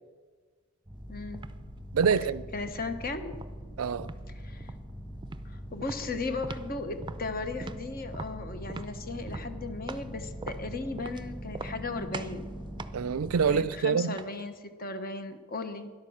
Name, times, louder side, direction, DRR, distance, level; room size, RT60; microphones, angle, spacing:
sound 1, 0.8-13.6, equal, 5° left, 2.0 m, -42 dB
voice 1, 1.1-1.4 2.5-3.3 4.3-4.7 5.4-12.6 13.5-15.9, left 3 dB, 45° left, 1.1 m, -36 dB
sound 2, 1.3-1.6 2.0-2.9 3.3-4.2 4.6-4.9 5.2-5.5 5.8-6.8 7.0-10.1 10.4-11.2 11.5-11.9 12.1-12.4 12.8-14.5, right 3 dB, 20° right, 0.5 m, -42 dB
voice 2, 1.9-2.5 3.8-4.1 12.9-14.2, right 6 dB, 80° right, 0.4 m, -26 dB
12.5 x 11.0 x 6.5 m
head